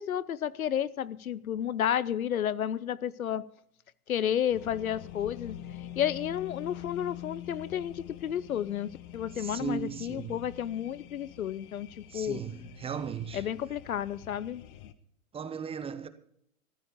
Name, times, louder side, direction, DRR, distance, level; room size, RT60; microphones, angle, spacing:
voice 1, 0.0-3.5 4.1-11.9 12.1-12.4 13.3-14.6, left 10 dB, 75° left, 0.8 m, -32 dB
sound 1, 4.5-14.9, left 13 dB, 40° left, 1.3 m, -46 dB
voice 2, 9.4-10.4 12.1-13.4 15.3-16.1, right 7 dB, 15° right, 0.9 m, -37 dB
14.5 x 12.0 x 5.1 m
figure-of-eight pair, 105°, 43 cm